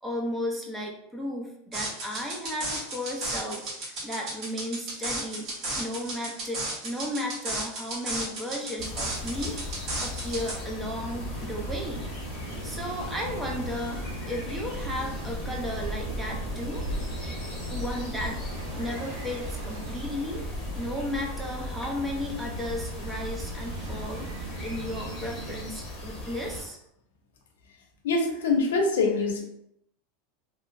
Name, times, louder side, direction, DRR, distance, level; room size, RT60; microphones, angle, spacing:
voice 1, 0.0-5.5 5.8-12.1 12.4-16.8 17.7-20.4 20.8-26.8, left 1 dB, 10° right, 0 dB, 0.5 m, -34 dB
sound 1, 1.7-10.5, right 2 dB, 45° right, 1.1 m, -34 dB
sound 2, 8.8-26.6, left 2 dB, 30° left, 0.8 m, -39 dB
sound 3, 8.9-25.6, right 1 dB, 75° right, 0.5 m, -38 dB
voice 2, 28.0-29.4, left 3 dB, 90° left, 2 dB, 0.6 m, -24 dB
2.8 x 2.1 x 2.5 m, 0.77 s
supercardioid pair, 125°, 0 cm